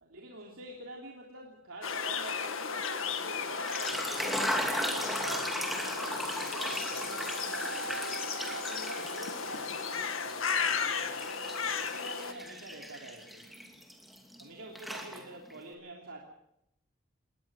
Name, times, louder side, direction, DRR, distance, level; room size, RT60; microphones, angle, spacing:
voice 1, 0.1-8.2 8.5-11.3 11.6-13.5 14.4-16.3, right 2 dB, 85° right, -1 dB, 3.2 m, -47 dB
sound 1, 1.8-12.3, left 6 dB, 80° left, 1.9 m, -35 dB
sound 2, 1.9-11.7, right 5 dB, 60° right, 5.6 m, -48 dB
sound 3, 3.5-9.9 10.3-14.4 14.7-15.6, equal, ahead, 2.7 m, -37 dB
21.5 x 19.0 x 6.4 m, 0.81 s
head